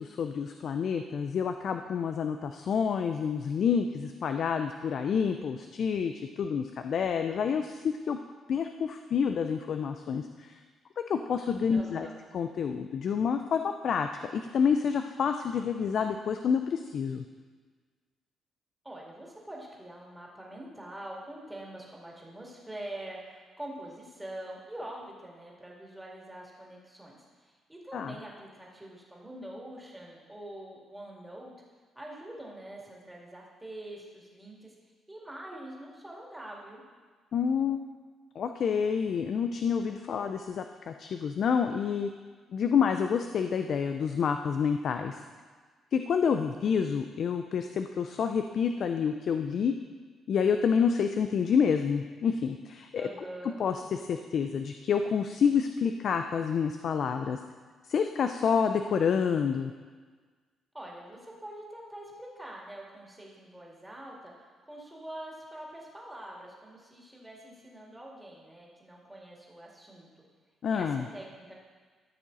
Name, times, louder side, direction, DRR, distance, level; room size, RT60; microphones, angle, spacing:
voice 1, 0.0-6.1 6.4-8.2 8.5-10.6 11.0-12.1 12.3-17.2 27.9-28.1 37.3-37.8 38.4-42.1 42.5-45.2 45.9-49.7 50.3-53.1 53.6-57.4 57.9-59.7 70.6-71.0, left 6 dB, 60° left, 7 dB, 0.4 m, -28 dB
voice 2, 11.7-12.2 18.8-27.2 27.7-31.5 32.0-34.7 35.1-36.8 53.0-53.6 60.7-64.3 64.7-70.1 70.7-71.5, right 1 dB, 10° right, -3 dB, 2.3 m, -44 dB
13.5 x 6.2 x 4.0 m, 1.5 s
cardioid pair, 90°, 0 cm